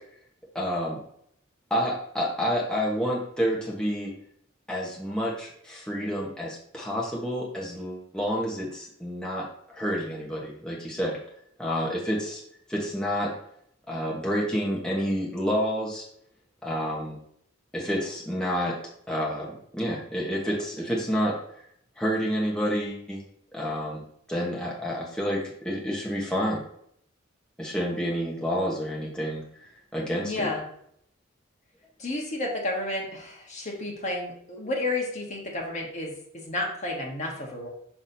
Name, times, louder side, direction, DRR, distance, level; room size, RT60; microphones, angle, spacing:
voice 1, 0.5-1.0 1.7-4.1 4.7-11.2 11.6-12.4 12.7-13.3 13.9-16.0 16.6-17.2 17.7-18.7 19.1-21.3 22.0-23.2 23.5-25.4 25.6-26.6 27.6-29.6 29.9-30.5, equal, 5° left, -4 dB, 1.1 m, -29 dB
voice 2, 30.2-30.6 32.0-37.7, left 2 dB, 35° left, -1 dB, 1.3 m, -31 dB
6.0 x 5.9 x 2.7 m, 0.69 s
head